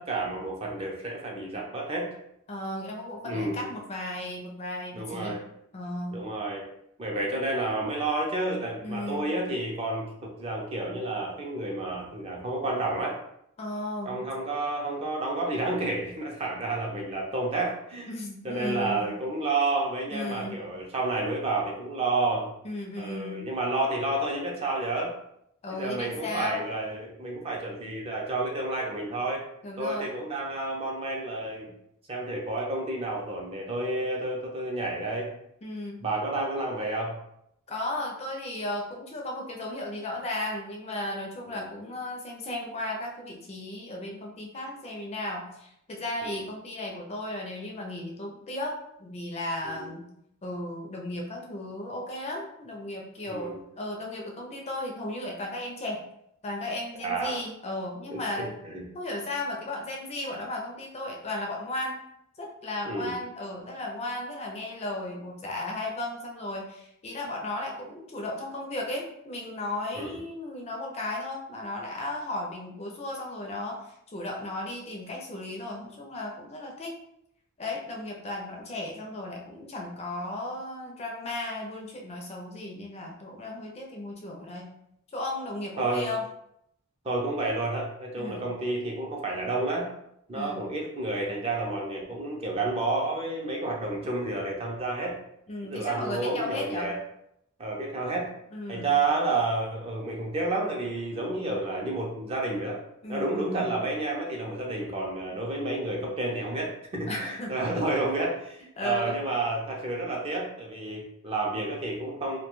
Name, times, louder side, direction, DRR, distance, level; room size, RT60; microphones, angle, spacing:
voice 1, 0.0-2.1 3.2-3.6 4.9-5.4 6.1-6.7 7.0-13.2 14.0-18.1 18.4-22.5 23.0-25.1 25.7-29.4 29.8-31.7 32.1-35.3 36.0-37.2 41.5-41.6 46.2-46.4 49.6-49.9 53.3-53.6 57.0-57.4 58.1-58.8 62.9-63.1 69.9-70.2 85.8-86.1 87.0-89.9 90.3-95.2 95.6-97.0 97.6-98.3 98.7-102.8 103.1-112.4, right 2 dB, 25° right, -1 dB, 0.4 m, -30 dB
voice 2, 2.5-5.4 5.7-6.2 8.8-9.3 13.6-14.2 18.1-19.1 20.1-20.6 22.6-23.5 25.6-26.6 29.6-30.1 35.6-36.0 37.7-50.1 50.4-56.0 56.4-58.5 58.9-62.0 62.4-76.9 77.6-84.7 85.1-86.3 88.2-88.4 90.3-90.6 95.5-96.9 98.5-98.9 103.0-103.8 107.1-107.5 108.8-109.2, left 1 dB, 30° left, 0 dB, 0.4 m, -35 dB
2.2 x 2.2 x 2.9 m, 0.76 s
head